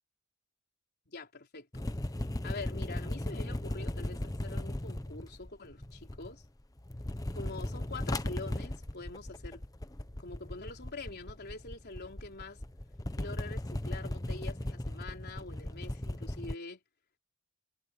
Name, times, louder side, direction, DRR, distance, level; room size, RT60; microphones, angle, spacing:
voice 1, 1.1-1.8 2.4-6.4 7.3-9.6 10.2-12.6 13.2-16.8, left 3 dB, 50° left, 3.9 m, -45 dB
sound 1, 1.7-6.5 6.8-16.5, left 1 dB, 15° left, 1.0 m, -37 dB
head